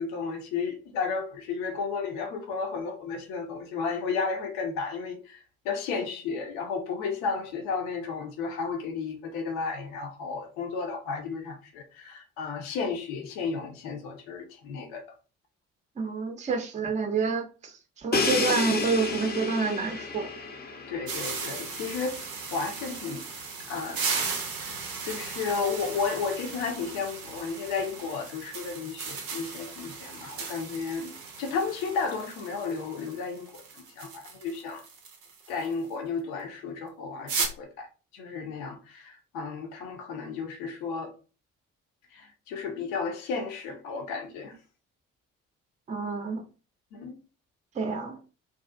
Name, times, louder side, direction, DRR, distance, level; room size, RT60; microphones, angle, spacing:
voice 1, 0.0-15.0 20.9-23.2 23.7-24.1 24.4-24.8 25.0-34.8 35.5-37.9 38.1-41.1 42.1-44.6 46.9-47.2, left 5 dB, 65° left, 0.7 m, -33 dB
voice 2, 16.0-20.3 45.9-46.4 47.7-48.2, right 4 dB, 20° right, 0.5 m, -28 dB
Crash cymbal, 18.1-21.9, left 3 dB, 25° left, 0.6 m, -30 dB
sound 1, 21.1-35.7 37.3-37.5, right 5 dB, 85° right, 0.5 m, -36 dB
2.6 x 2.3 x 2.3 m
figure-of-eight pair, 40°, 39 cm